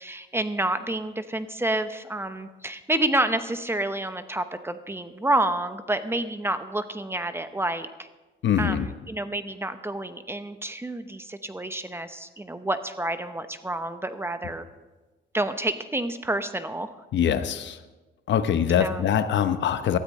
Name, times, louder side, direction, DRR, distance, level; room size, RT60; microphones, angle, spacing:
voice 1, 0.0-8.1 8.6-14.7 15.3-16.9 18.8-19.0, right 1 dB, 10° right, 10 dB, 0.8 m, -29 dB
voice 2, 8.4-8.9 17.1-17.8 18.3-20.0, left 9 dB, 65° left, 10 dB, 0.9 m, -23 dB
18.5 x 13.0 x 3.2 m, 1.2 s
cardioid pair, 90°, 20 cm